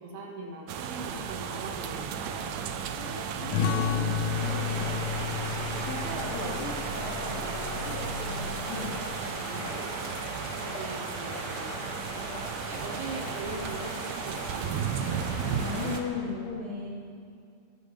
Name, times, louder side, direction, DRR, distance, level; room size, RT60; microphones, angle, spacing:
voice 1, 0.0-2.6 10.6-11.8 12.5-14.6, right 3 dB, 65° right, -1 dB, 2.8 m, -41 dB
sound 1, 0.7-16.0, right 7 dB, 85° right, 1.9 m, -34 dB
voice 2, 2.9-5.1 5.6-9.8 11.6-11.7 15.5-16.9, left 4 dB, 55° left, -5 dB, 1.5 m, -38 dB
sound 2, 3.5-8.7, left 7 dB, 85° left, 2.1 m, -33 dB
sound 3, 4.3-16.0, left 1 dB, 25° left, 2.5 m, -39 dB
19.5 x 16.0 x 3.2 m, 2.3 s
omnidirectional pair, 4.9 m